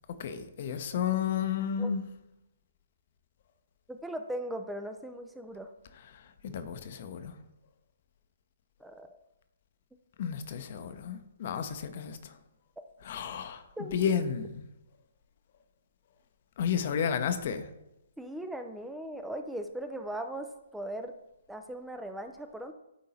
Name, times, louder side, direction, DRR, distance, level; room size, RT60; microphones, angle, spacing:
voice 1, 0.1-2.0 6.1-7.3 10.2-12.3 13.0-14.6 16.6-17.7, left 8 dB, 50° left, 0.7 m, -32 dB
voice 2, 3.9-5.7 8.8-9.1 13.8-14.0 18.2-21.1 21.5-22.7, right 1 dB, 5° right, 0.4 m, -38 dB
9.3 x 3.8 x 4.2 m
hypercardioid pair, 135°, 0 cm